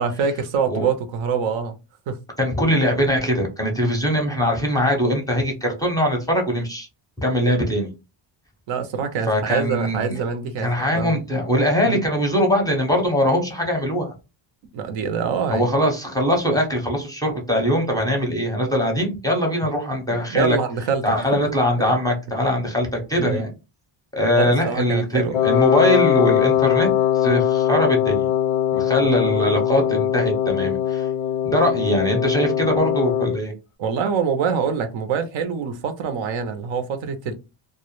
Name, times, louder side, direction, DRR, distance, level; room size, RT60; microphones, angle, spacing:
voice 1, 0.0-1.8 2.1-2.2 8.7-11.2 11.8-12.0 14.7-15.7 20.3-21.5 23.2-23.4 24.3-25.4 29.0-29.1 33.8-37.3, right 6 dB, 65° right, 0.6 m, -25 dB
voice 2, 2.4-6.9 7.2-7.9 9.3-10.2 10.6-14.1 15.5-20.6 21.0-23.5 24.1-26.9 27.1-28.3 28.7-31.1 31.4-33.5, equal, 10° left, 0.6 m, -21 dB
Wind instrument woodwind instrument, 25.3-33.4, left 11 dB, 85° left, 0.5 m, -21 dB
2.1 x 2.0 x 2.9 m
cardioid pair, 105°, 49 cm